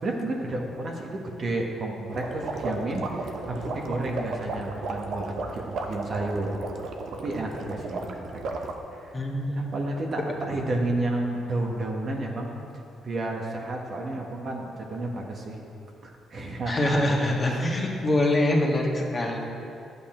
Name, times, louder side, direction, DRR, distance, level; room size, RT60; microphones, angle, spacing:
voice 1, 0.0-5.3 5.8-6.6 7.2-8.4 8.9-9.2 9.5-10.2 10.5-12.5 13.0-15.6 16.0-17.0 17.4-17.6, right 2 dB, 45° right, 0 dB, 1.5 m, -31 dB
sound 1, 2.1-8.8, right 3 dB, 65° right, 1.0 m, -34 dB
voice 2, 9.1-9.7 16.7-19.4, left 1 dB, 30° left, -1 dB, 1.6 m, -24 dB
11.5 x 8.4 x 4.5 m, 2.7 s
cardioid pair, 90°, 0 cm